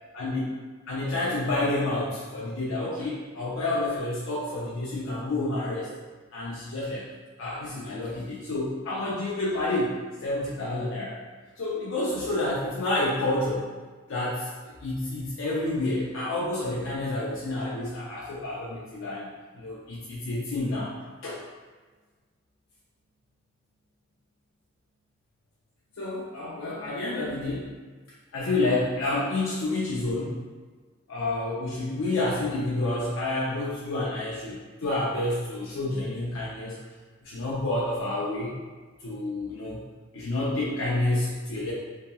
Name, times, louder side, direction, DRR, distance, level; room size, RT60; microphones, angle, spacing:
voice 1, 0.9-5.9 6.3-7.1 7.4-9.9 10.2-11.2 11.6-13.7 14.1-19.3 19.6-20.9 21.2-21.4 26.0-27.7 28.3-30.4 31.1-36.8 37.2-38.6 39.0-39.8 40.1-41.7, left 2 dB, 85° left, -6 dB, 0.5 m, -29 dB
2.8 x 2.7 x 2.2 m, 1.4 s
head